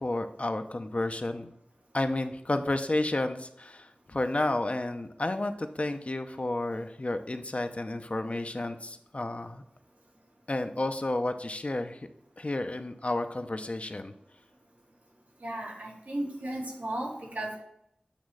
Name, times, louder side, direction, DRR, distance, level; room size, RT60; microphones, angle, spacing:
voice 1, 0.0-1.5 1.9-9.6 10.5-12.0 12.4-14.1, left 2 dB, 45° left, 7 dB, 0.7 m, -31 dB
voice 2, 15.4-17.6, right 1 dB, 80° right, -3 dB, 2.3 m, -35 dB
8.4 x 3.1 x 6.2 m, 0.74 s
wide cardioid pair, 50°, 3 cm